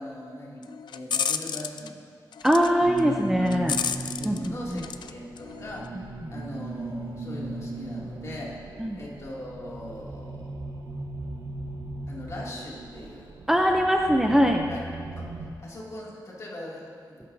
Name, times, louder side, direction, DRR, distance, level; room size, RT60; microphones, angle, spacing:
voice 1, 0.0-2.0 3.4-8.7 8.9-10.4 12.1-13.4 14.7-14.8 15.2-15.3 15.6-17.2, left 1 dB, 45° left, -4 dB, 2.6 m, -40 dB
sound 1, 0.6-1.9 2.3-2.7 3.0-5.1 5.4-5.9, left 7 dB, 90° left, 0.4 m, -31 dB
voice 2, 2.4-3.8 4.2-4.8 6.2-6.3 8.8-9.0 13.5-14.7, equal, 5° right, 2 dB, 0.6 m, -22 dB
sound 2, 2.8-15.5, right 2 dB, 75° right, 1.2 m, -37 dB
20.0 x 11.0 x 2.8 m, 2.1 s
wide cardioid pair, 140°, 8 cm